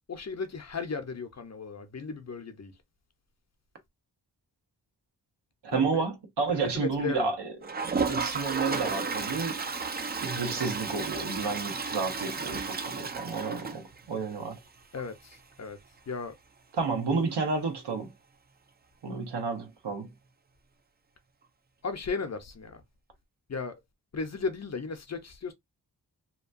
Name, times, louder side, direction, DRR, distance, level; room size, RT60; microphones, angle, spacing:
voice 1, 0.1-2.7 5.7-6.0 6.6-7.3 14.9-15.8 16.1-16.3 21.8-22.8 23.5-23.8 24.1-25.5, left 4 dB, 40° left, 0.6 m, -35 dB
voice 2, 5.6-9.6 10.2-14.6 16.7-18.1 19.0-20.1, right 4 dB, 80° right, 1.0 m, -31 dB
Toilet flush, 7.6-14.3 14.7-14.8 15.0-15.1 15.3-15.4 18.0-18.1 19.4-19.5, right 4 dB, 25° right, 0.4 m, -33 dB
2.9 x 2.2 x 2.5 m
wide cardioid pair, 95°, 40 cm